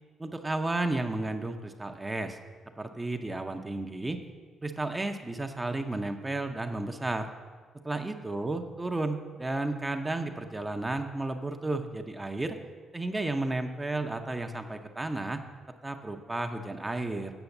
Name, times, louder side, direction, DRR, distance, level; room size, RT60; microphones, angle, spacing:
voice 1, 0.2-2.4 2.8-4.2 4.6-7.3 7.8-12.6 12.9-15.4 15.8-17.3, right 2 dB, 15° right, 5 dB, 0.7 m, -32 dB
8.0 x 6.2 x 7.1 m, 1.5 s
cardioid pair, 90°, 0 cm